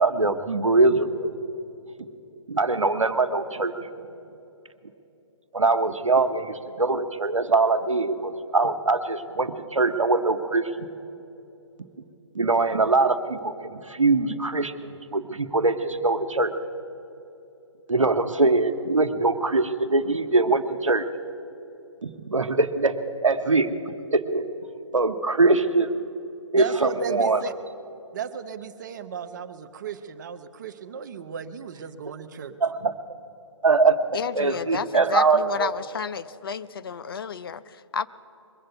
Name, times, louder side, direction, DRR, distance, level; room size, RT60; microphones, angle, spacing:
voice 1, 0.0-1.3 2.5-3.7 5.5-10.7 12.3-14.7 15.1-16.5 17.9-21.1 22.0-23.7 24.1-24.5 24.9-25.9 26.5-27.4 32.6-32.9 33.6-34.0 34.3-35.7, right 3 dB, 85° right, 9 dB, 0.9 m, -22 dB
voice 2, 26.5-27.5 28.1-32.6, right 6 dB, 35° right, 11 dB, 0.7 m, -34 dB
voice 3, 34.1-38.1, left 7 dB, 50° left, 14 dB, 0.5 m, -31 dB
21.5 x 7.6 x 8.1 m, 2.8 s
figure-of-eight pair, 145°, 16 cm